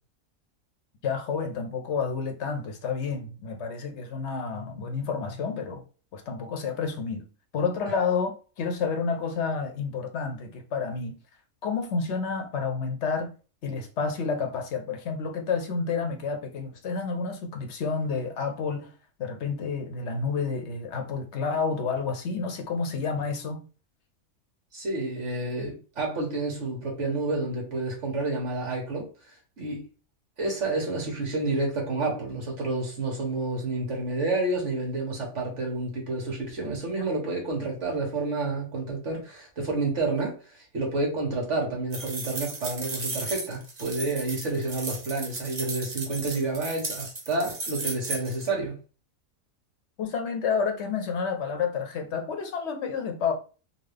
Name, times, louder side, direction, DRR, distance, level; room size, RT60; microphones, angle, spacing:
voice 1, 1.0-5.8 6.1-7.2 7.5-11.2 11.6-13.3 13.6-18.9 19.2-23.6 50.0-53.3, left 5 dB, 55° left, 0.9 m, -30 dB
voice 2, 24.7-29.8 30.4-48.8, right 2 dB, 55° right, 1.6 m, -29 dB
sound 1, 41.9-48.5, right 3 dB, 35° right, 0.8 m, -35 dB
3.7 x 2.4 x 3.3 m
omnidirectional pair, 1.5 m